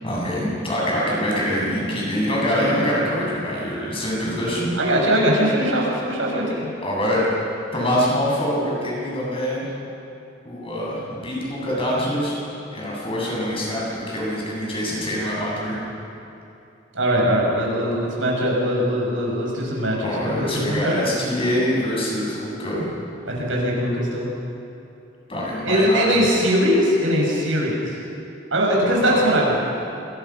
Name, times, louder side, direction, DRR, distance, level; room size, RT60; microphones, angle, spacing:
voice 1, 0.0-4.7 6.8-7.2 7.7-9.7 10.4-12.4 12.7-15.8 20.0-22.9 25.3-26.1 28.8-29.3, equal, 30° left, -4 dB, 7.9 m, -24 dB
voice 2, 4.8-6.7 16.9-21.0 23.3-24.3 25.6-28.0 28.5-29.6, equal, 85° right, -2 dB, 6.9 m, -21 dB
28.0 x 21.5 x 6.0 m, 2.8 s
head